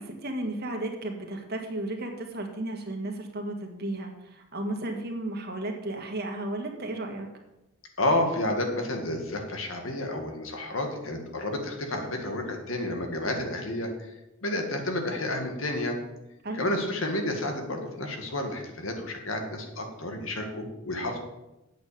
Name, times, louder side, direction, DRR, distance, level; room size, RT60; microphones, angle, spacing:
voice 1, 0.0-7.3 16.4-16.7, right 1 dB, 50° right, 3 dB, 1.8 m, -34 dB
voice 2, 8.0-14.1 14.4-16.0 16.5-21.2, left 1 dB, 75° left, 4 dB, 1.9 m, -30 dB
8.6 x 7.8 x 6.8 m, 0.96 s
head